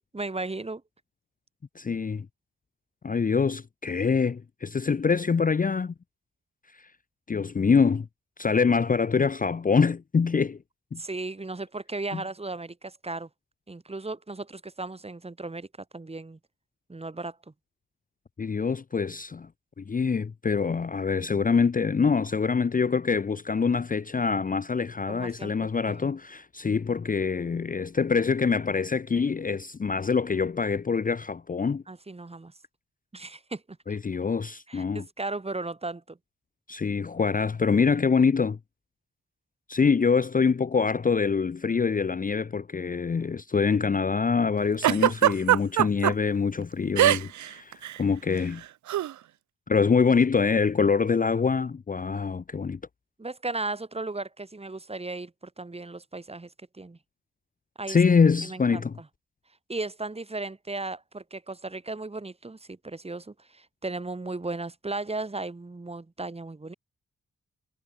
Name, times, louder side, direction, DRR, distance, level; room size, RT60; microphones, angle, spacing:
voice 1, 0.1-0.8 11.0-13.3 13.7-15.7 15.9-16.4 16.9-17.4 25.1-26.2 31.9-32.5 33.1-34.0 34.7-36.2 53.2-56.5 56.8-57.0 57.8-58.0 58.4-58.8 59.7-66.7, right 3 dB, 20° right, 1.7 m, -36 dB
voice 2, 1.8-2.3 3.0-5.9 7.3-8.1 8.4-10.6 10.9-11.0 12.1-12.2 18.4-19.5 19.8-31.8 33.9-35.0 36.7-38.6 39.7-48.6 49.7-52.8 57.9-59.0, left 5 dB, 30° left, 0.6 m, -25 dB
Giggle, 44.8-46.1 47.0-47.5 47.7-48.0 48.9-49.1, right 12 dB, 75° right, 0.6 m, -21 dB
cardioid pair, 80°, 29 cm